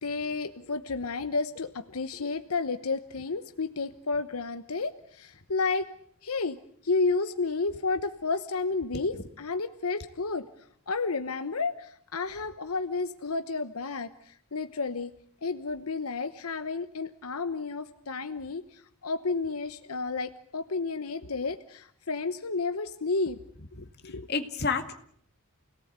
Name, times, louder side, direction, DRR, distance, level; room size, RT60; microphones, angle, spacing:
voice 1, 0.0-5.9 6.2-6.6 6.8-10.5 10.9-15.1 15.4-23.4 24.0-24.3, left 4 dB, 85° left, 9 dB, 1.1 m, -31 dB
voice 2, 24.3-24.9, left 4 dB, 50° left, 6 dB, 2.1 m, -30 dB
28.5 x 18.5 x 8.2 m, 0.65 s
head